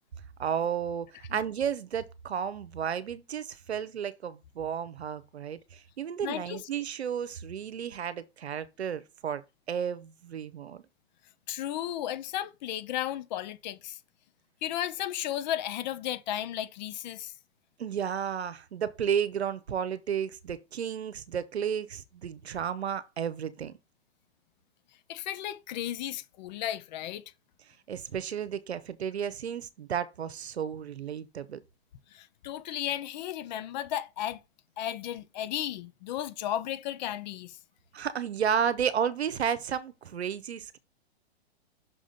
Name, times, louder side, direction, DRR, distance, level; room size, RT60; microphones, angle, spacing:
voice 1, 0.4-9.4 9.7-10.8 17.8-23.7 27.9-31.6 37.9-40.8, right 8 dB, 75° right, 0.9 m, -32 dB
voice 2, 6.2-6.6 11.5-14.0 14.6-17.4 25.1-27.2 32.1-34.4 34.8-37.6, left 12 dB, 40° left, 0.9 m, -34 dB
6.1 x 5.0 x 3.9 m
figure-of-eight pair, 115°, 33 cm